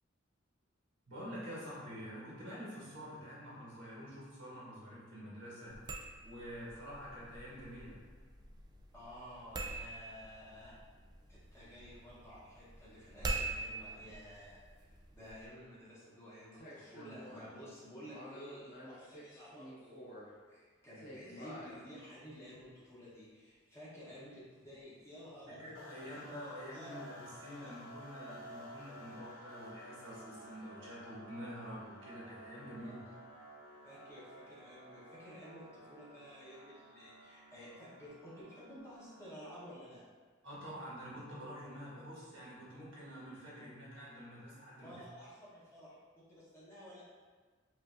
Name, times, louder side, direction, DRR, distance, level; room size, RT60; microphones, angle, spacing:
voice 1, 1.1-5.7 6.2-8.0 25.6-33.0 40.4-44.9, equal, 70° right, -7 dB, 1.3 m, -47 dB
sound 1, 5.7-15.5, right 2 dB, 20° right, 0.3 m, -45 dB
voice 2, 8.9-10.7 11.3-27.0 27.5-27.7 32.8-33.1 33.8-40.0 44.8-47.0, equal, 15° left, -9 dB, 1.0 m, -53 dB
sound 2, 16.5-17.5 18.0-20.3 21.0-21.7 22.6-22.7, equal, 45° left, 0.9 m, -50 dB
sound 3, 25.7-39.9, equal, 75° left, 0.6 m, -54 dB
4.7 x 2.6 x 2.6 m, 1.4 s
head